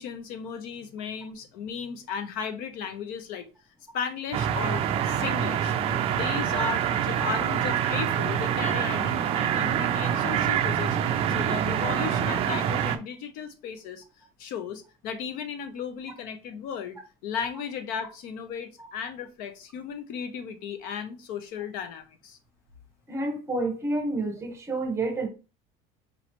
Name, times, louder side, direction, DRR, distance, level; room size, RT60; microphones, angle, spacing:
voice 1, 0.0-3.5 3.9-5.7 6.1-14.0 14.4-22.4, left 7 dB, 55° left, 0.6 m, -35 dB
sound 1, 4.3-13.0, right 9 dB, 35° right, 0.4 m, -26 dB
voice 2, 23.1-25.3, right 2 dB, 15° right, 0.9 m, -29 dB
5.2 x 3.1 x 2.9 m
cardioid pair, 175°, 17 cm